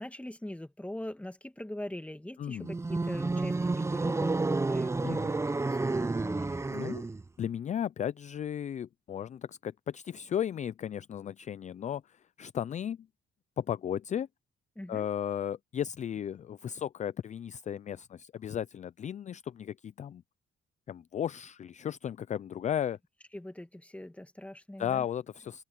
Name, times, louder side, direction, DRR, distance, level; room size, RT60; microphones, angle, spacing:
voice 1, 0.0-5.4 5.6-6.6 14.8-15.1 23.3-25.0, left 1 dB, 5° left, 2.1 m, -42 dB
sound 1, 2.6-7.3, right 3 dB, 15° right, 0.6 m, -30 dB
voice 2, 6.7-7.1 7.4-13.1 13.6-14.3 14.9-20.2 20.9-23.0 24.8-25.6, left 9 dB, 35° left, 0.4 m, -35 dB
open air
cardioid pair, 90°, 20 cm